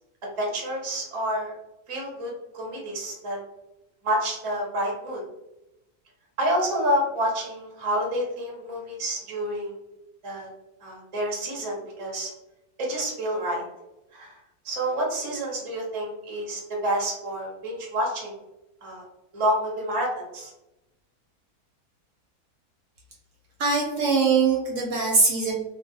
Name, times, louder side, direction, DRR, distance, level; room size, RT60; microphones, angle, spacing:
voice 1, 0.4-1.5 1.9-3.4 4.0-5.2 6.4-9.7 10.2-10.5 10.8-12.3 12.8-13.6 14.1-14.4 14.6-18.3 18.8-19.0 19.3-20.5, equal, 35° right, -2 dB, 0.5 m, -28 dB
voice 2, 23.6-25.5, right 4 dB, 70° right, -2 dB, 0.8 m, -22 dB
2.4 x 2.2 x 2.7 m, 0.94 s
omnidirectional pair, 1.6 m